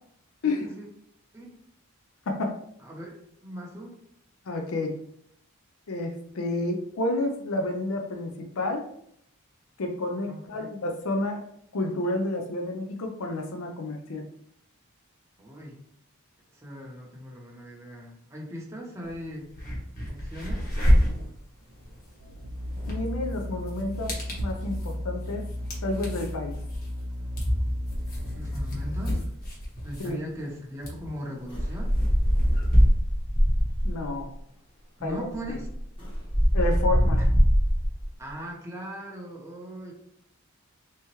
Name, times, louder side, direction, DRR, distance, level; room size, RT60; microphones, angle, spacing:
voice 1, 0.4-0.9 1.3-1.5 2.8-3.2 3.4-3.9 10.3-10.7 15.4-15.8 16.5-19.5 20.1-20.8 28.3-29.3 29.8-31.9 35.0-35.7 37.2-37.3 38.2-39.9, equal, 10° right, -2 dB, 0.7 m, -39 dB
voice 2, 4.5-4.9 5.9-8.3 8.6-8.9 9.8-11.4 11.7-14.2 21.0-21.2 22.9-25.5 25.8-26.6 30.0-30.2 33.8-34.3 35.0-35.3 36.5-37.2, left 2 dB, 70° left, 3 dB, 0.5 m, -30 dB
sound 1, 19.0-19.1 19.5-32.8, equal, 40° left, 1.2 m, -30 dB
sound 2, 22.2-29.2, left 1 dB, 80° right, 0.5 m, -35 dB
sound 3, 31.5-34.1 35.0-35.1 35.4-38.1, equal, 25° left, 0.9 m, -22 dB
3.4 x 2.9 x 3.0 m, 0.70 s
head